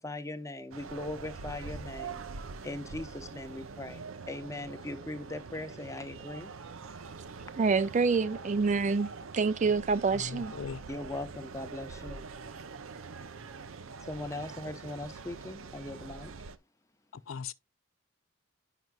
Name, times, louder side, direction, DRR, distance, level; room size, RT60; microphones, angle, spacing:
voice 1, 0.0-2.2 2.6-6.5 10.9-12.3 14.1-16.3, left 2 dB, 15° left, 0.8 m, -40 dB
sound 1, 0.7-16.6, right 4 dB, 85° right, 0.6 m, -44 dB
voice 2, 7.6-9.1 9.3-10.5, right 4 dB, 35° right, 0.4 m, -27 dB
voice 3, 10.1-10.8 17.1-17.5, left 6 dB, 90° left, 0.5 m, -40 dB
9.2 x 5.8 x 2.3 m
head